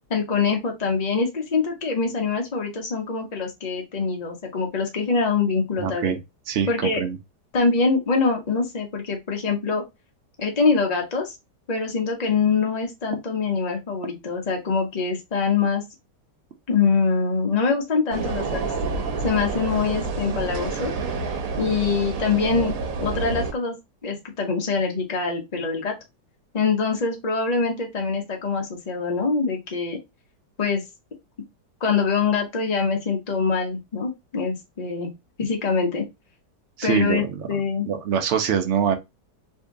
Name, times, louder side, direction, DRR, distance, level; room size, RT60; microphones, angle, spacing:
voice 1, 0.1-6.1 6.7-7.0 7.5-9.8 10.4-11.3 11.7-15.8 16.7-18.6 19.2-20.9 21.5-22.7 23.0-23.7 24.0-25.9 26.5-30.0 30.6-30.8 31.8-35.1 35.4-36.0 36.8-37.9, left 5 dB, 65° left, 0.4 m, -24 dB
voice 2, 5.8-6.2 6.5-7.2 36.8-37.5 37.9-39.0, right 8 dB, 80° right, 0.6 m, -24 dB
sound 1, 18.1-23.5, right 4 dB, 60° right, 1.0 m, -28 dB
2.8 x 2.7 x 3.4 m
omnidirectional pair, 1.8 m